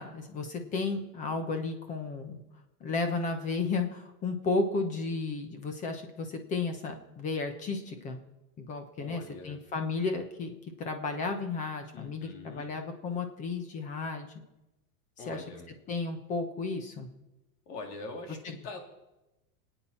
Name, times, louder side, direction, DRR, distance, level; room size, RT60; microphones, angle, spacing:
voice 1, 0.0-2.4 2.8-8.2 8.6-10.5 10.8-14.3 15.3-15.4 15.9-17.1 18.4-18.6, left 3 dB, 15° left, 6 dB, 0.9 m, -33 dB
voice 2, 9.0-9.6 11.9-12.7 15.2-15.7 17.7-18.8, left 3 dB, 75° left, 2 dB, 3.1 m, -43 dB
25.5 x 9.0 x 4.4 m, 0.99 s
supercardioid pair, 175°, 47 cm